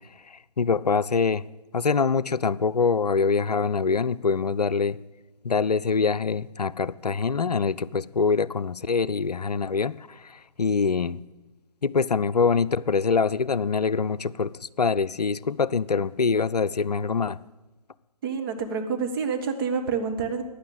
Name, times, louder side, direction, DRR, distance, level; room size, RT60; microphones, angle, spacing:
voice 1, 0.3-1.4 1.7-5.0 5.4-11.2 11.8-17.4, left 5 dB, 70° left, 16 dB, 0.6 m, -24 dB
voice 2, 18.2-20.4, right 5 dB, 30° right, 3 dB, 1.6 m, -28 dB
15.0 x 10.0 x 8.0 m, 1.1 s
figure-of-eight pair, 135°, 21 cm